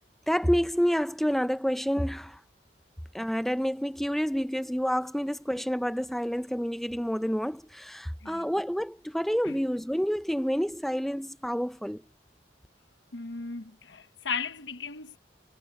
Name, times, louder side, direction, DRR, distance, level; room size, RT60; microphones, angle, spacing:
voice 1, 0.3-2.4 3.1-12.0, equal, ahead, 0.5 m, -28 dB
voice 2, 13.1-15.2, left 5 dB, 85° left, 1.0 m, -36 dB
head